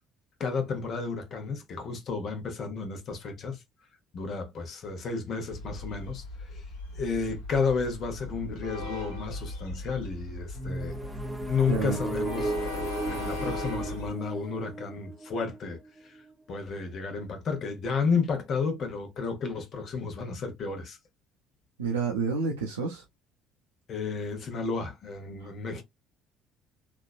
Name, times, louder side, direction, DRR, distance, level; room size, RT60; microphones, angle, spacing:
voice 1, 0.4-3.6 4.1-6.6 6.9-11.0 11.5-16.2 16.5-21.0 23.9-25.8, left 5 dB, 50° left, 1.0 m, -32 dB
Train, 5.5-14.1, left 2 dB, 80° left, 1.1 m, -38 dB
sound 1, 10.5-16.3, right 2 dB, 10° right, 0.5 m, -35 dB
voice 2, 21.8-23.0 25.4-25.5, right 5 dB, 80° right, 0.5 m, -29 dB
3.1 x 2.5 x 2.4 m
figure-of-eight pair, 55°, 0 cm